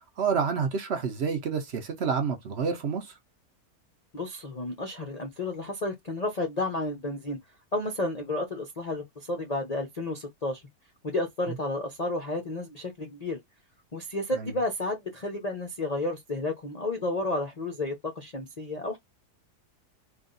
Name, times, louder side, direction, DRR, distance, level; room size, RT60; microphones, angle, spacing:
voice 1, 0.2-3.1 14.3-14.5, right 6 dB, 50° right, 0.9 m, -28 dB
voice 2, 4.1-7.4 7.7-10.6 11.0-13.4 13.9-19.0, left 2 dB, 45° left, 0.5 m, -31 dB
3.5 x 2.4 x 3.9 m
omnidirectional pair, 1.7 m